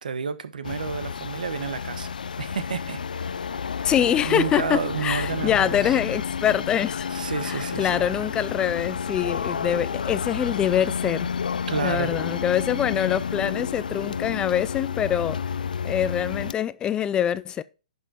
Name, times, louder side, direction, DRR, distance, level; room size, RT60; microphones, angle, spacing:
voice 1, 0.0-2.1 2.4-3.9 4.2-6.0 7.1-8.0 11.7-12.2, right 6 dB, 80° right, 1.2 m, -31 dB
sound 1, 0.6-16.5, left 6 dB, 85° left, 0.3 m, -30 dB
voice 2, 3.8-7.1 7.4-11.3 11.8-15.4 15.8-17.6, left 10 dB, 20° left, 0.4 m, -24 dB
11.0 x 5.6 x 4.2 m
hypercardioid pair, 130°, 4 cm